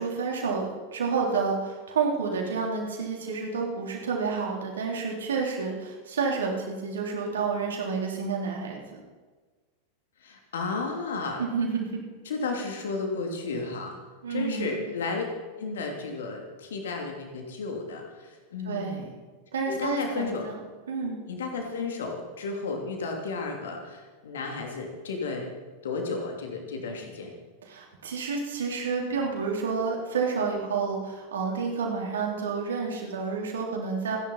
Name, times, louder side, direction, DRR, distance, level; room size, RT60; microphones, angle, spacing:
voice 1, 0.0-9.0 11.4-12.0 14.2-14.8 18.7-19.1 19.5-20.6 20.9-21.2 27.7-34.2, right 5 dB, 65° right, 0 dB, 3.7 m, -29 dB
voice 2, 10.2-11.4 12.2-14.0 14.3-15.3 15.6-19.1 19.7-20.4 21.3-25.5 25.8-27.3, left 4 dB, 60° left, 2 dB, 3.0 m, -33 dB
28.0 x 11.0 x 4.3 m, 1.4 s
figure-of-eight pair, 90°, 0 cm